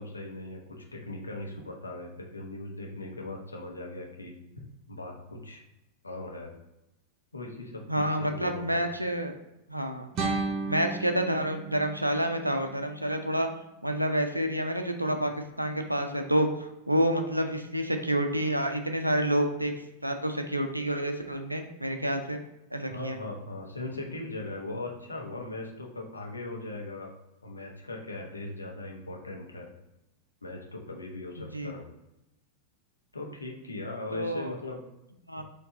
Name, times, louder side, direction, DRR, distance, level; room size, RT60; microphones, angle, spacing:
voice 1, 0.0-4.4 4.9-5.6 6.0-6.5 7.3-8.8 22.9-27.1 27.4-29.7 30.4-31.8 33.1-34.8 35.4-35.5, left 2 dB, 80° left, 0 dB, 0.8 m, -39 dB
voice 2, 7.9-9.3 9.7-10.1 10.7-13.5 13.8-19.7 20.0-22.4 22.7-23.2 31.4-31.7 34.1-34.5 35.3-35.4, right 1 dB, 85° right, 5 dB, 0.4 m, -28 dB
sound 1, 10.1-13.2, right 3 dB, 35° right, 0.8 m, -34 dB
4.6 x 2.6 x 3.8 m, 0.90 s
figure-of-eight pair, 90°, 0 cm